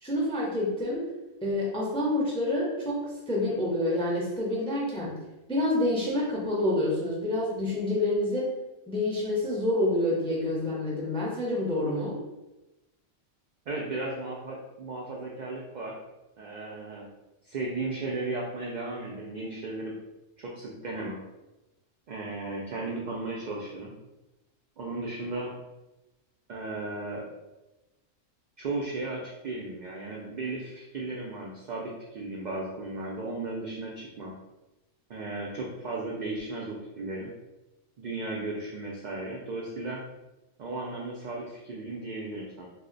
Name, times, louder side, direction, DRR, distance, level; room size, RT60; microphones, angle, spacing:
voice 1, 0.0-1.0 1.4-5.1 5.5-8.5 8.9-12.2, left 1 dB, 10° left, -4 dB, 0.3 m, -28 dB
voice 2, 13.7-15.9 16.4-17.1 17.4-19.9 20.4-21.2 22.1-23.9 24.8-25.5 26.5-27.2 28.6-34.3 35.1-37.3 38.0-40.0 40.6-42.7, right 2 dB, 75° right, -3 dB, 0.4 m, -35 dB
2.7 x 2.1 x 3.8 m, 1.0 s
omnidirectional pair, 1.3 m